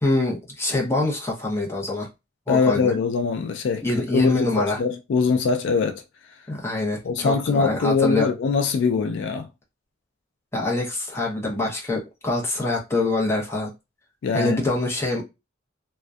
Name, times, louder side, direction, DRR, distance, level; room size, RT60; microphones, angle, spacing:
voice 1, 0.0-2.1 2.5-2.9 3.8-4.8 6.5-8.3 10.5-13.7 14.3-15.3, left 2 dB, 15° left, 0.7 m, -25 dB
voice 2, 2.5-3.8 4.1-6.0 7.0-9.5 14.2-14.6, left 5 dB, 60° left, 0.3 m, -22 dB
2.5 x 2.2 x 2.2 m
head